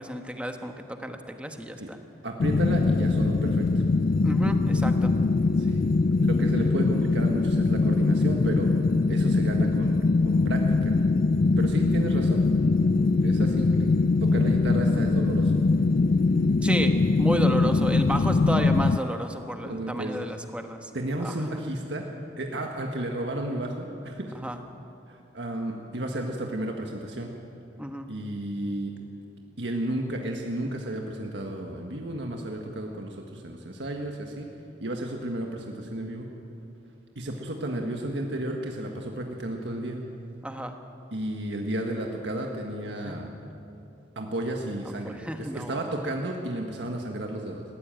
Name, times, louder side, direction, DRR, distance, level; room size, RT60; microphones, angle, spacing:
voice 1, 0.0-2.0 4.2-5.1 16.6-16.9 17.2-20.9 21.2-21.5 24.3-24.6 27.8-28.1 40.4-40.7 43.0-43.2 44.8-45.9, equal, 5° right, 5 dB, 1.2 m, -32 dB
voice 2, 2.2-3.7 5.6-5.9 6.2-8.7 9.1-10.9 11.6-12.4 13.2-15.5 19.6-20.2 20.9-22.0 22.4-24.3 25.1-27.3 28.1-28.9 29.6-34.5 34.8-36.3 37.1-40.0 41.1-43.3 44.1-47.6, right 1 dB, 85° right, 1 dB, 1.7 m, -32 dB
sound 1, 2.4-19.0, left 3 dB, 50° left, 0.4 m, -22 dB
19.5 x 15.5 x 9.1 m, 2.8 s
head